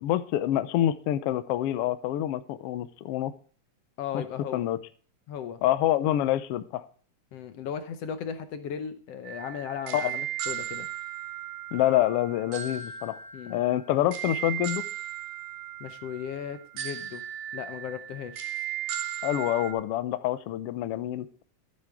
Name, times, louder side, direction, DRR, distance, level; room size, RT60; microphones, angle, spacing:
voice 1, 0.0-3.3 4.1-4.2 4.5-4.8 5.6-6.9 9.9-10.0 11.7-13.2 13.5-14.8 19.2-21.3, left 13 dB, 85° left, 13 dB, 1.3 m, -26 dB
voice 2, 4.0-4.7 5.3-5.6 7.3-10.9 13.3-13.6 15.8-17.2 17.5-18.5, left 8 dB, 65° left, 9 dB, 1.7 m, -36 dB
sound 1, 9.3-19.7, right 11 dB, 80° right, 2.8 m, -36 dB
12.5 x 9.8 x 3.5 m, 0.42 s
omnidirectional pair, 3.6 m